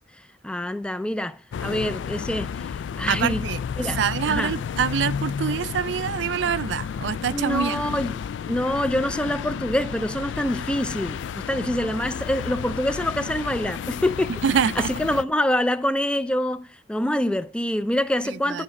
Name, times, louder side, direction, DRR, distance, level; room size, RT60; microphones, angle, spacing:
voice 1, 0.4-3.5 3.8-4.6 7.3-18.6, left 1 dB, 5° left, 0.4 m, -26 dB
sound 1, 1.5-15.2, left 7 dB, 85° left, 0.3 m, -32 dB
voice 2, 3.1-3.6 4.0-7.8 14.4-14.9 18.5-18.6, right 7 dB, 75° right, 0.4 m, -25 dB
10.0 x 4.1 x 5.9 m
head